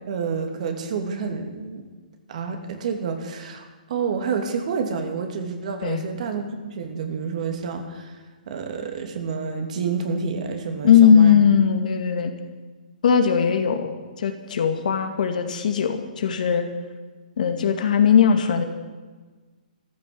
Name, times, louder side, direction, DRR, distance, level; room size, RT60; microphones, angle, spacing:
voice 1, 0.1-1.9 2.3-8.1 8.5-11.3, right 5 dB, 55° right, 5 dB, 2.7 m, -29 dB
voice 2, 10.8-12.3 13.0-16.7 17.4-18.6, left 7 dB, 60° left, 6 dB, 2.2 m, -19 dB
14.0 x 12.0 x 7.9 m, 1.4 s
hypercardioid pair, 155°, 5 cm